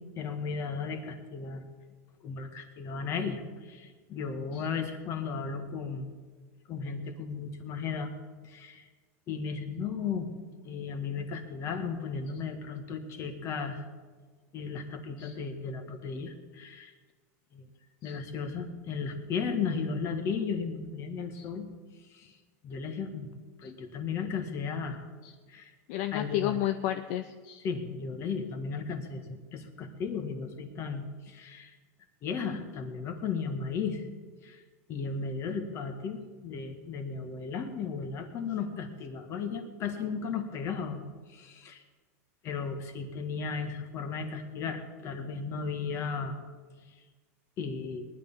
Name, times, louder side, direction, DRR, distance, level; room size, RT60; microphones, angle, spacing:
voice 1, 0.2-1.6 2.2-6.1 6.7-8.1 8.4-8.9 9.3-10.3 10.6-13.8 14.5-16.9 17.5-17.6 18.0-21.7 22.1-22.4 22.6-23.3 23.6-25.1 25.5-25.7 26.1-26.6 27.6-31.7 32.2-34.1 34.4-34.6 34.9-41.0 41.3-41.8 42.4-46.4 47.6-48.1, left 5 dB, 35° left, 7 dB, 1.7 m, -35 dB
voice 2, 25.9-27.6, left 13 dB, 55° left, 9 dB, 0.6 m, -32 dB
19.0 x 11.0 x 5.6 m, 1.4 s
supercardioid pair, 150°, 8 cm